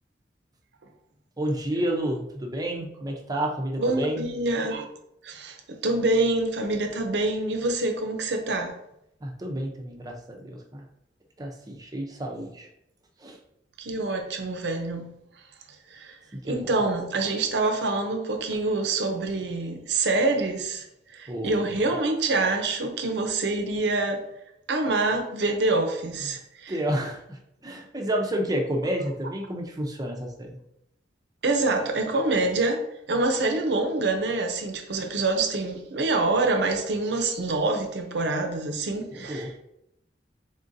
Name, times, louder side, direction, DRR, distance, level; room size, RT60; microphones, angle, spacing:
voice 1, 1.4-4.3 9.2-10.8 11.4-12.7 13.2-13.4 16.5-16.8 21.3-21.9 26.2-26.3 26.7-30.6 39.1-39.6, right 1 dB, 20° right, 0.6 m, -30 dB
voice 2, 3.8-4.9 5.2-8.8 13.8-15.1 15.9-16.2 16.4-24.3 24.7-26.8 31.4-39.5, right 2 dB, 70° right, 0.6 m, -26 dB
3.8 x 3.7 x 2.6 m
head